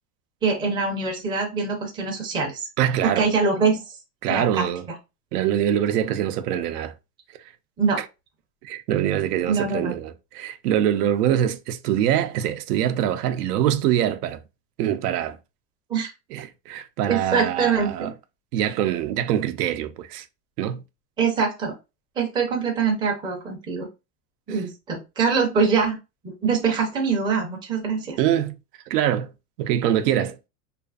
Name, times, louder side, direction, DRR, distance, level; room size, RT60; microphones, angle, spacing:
voice 1, 0.4-2.7 3.0-3.8 4.3-4.7 7.8-8.0 9.4-9.9 15.9-16.1 17.1-18.1 21.2-21.7 22.2-23.9 24.5-26.0 26.2-28.2, right 5 dB, 10° right, 0.4 m, -23 dB
voice 2, 2.8-3.3 4.2-4.9 5.3-6.9 8.6-14.4 14.8-15.4 16.3-18.1 18.5-20.3 20.6-20.8 24.5-24.6 28.2-28.6 28.9-29.3 29.6-30.4, right 10 dB, 85° right, 0.6 m, -24 dB
2.5 x 2.4 x 2.3 m
supercardioid pair, 140°, 45 cm